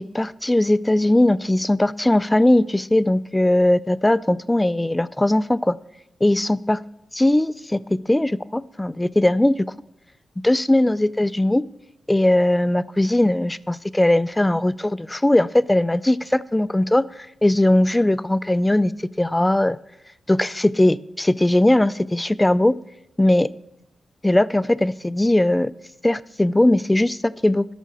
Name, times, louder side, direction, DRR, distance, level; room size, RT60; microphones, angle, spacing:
voice 1, 0.0-5.8 6.2-6.8 7.1-9.7 10.4-11.6 12.1-18.9 19.2-19.8 20.3-22.8 23.2-23.5 24.2-25.7 26.0-27.7, left 1 dB, 10° left, 18 dB, 0.3 m, -19 dB
13.0 x 5.5 x 6.2 m, 0.83 s
cardioid pair, 85°, 0 cm